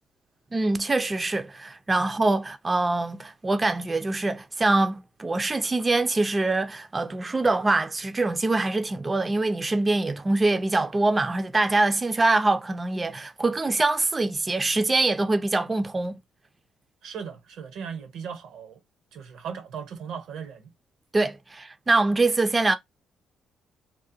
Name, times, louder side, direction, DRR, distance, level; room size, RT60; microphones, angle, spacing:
voice 1, 0.5-16.2 21.1-22.8, right 2 dB, 25° right, 0.3 m, -24 dB
voice 2, 17.0-18.8 19.1-20.7, right 7 dB, 80° right, 0.6 m, -37 dB
2.6 x 2.0 x 2.6 m
cardioid pair, 90°, 0 cm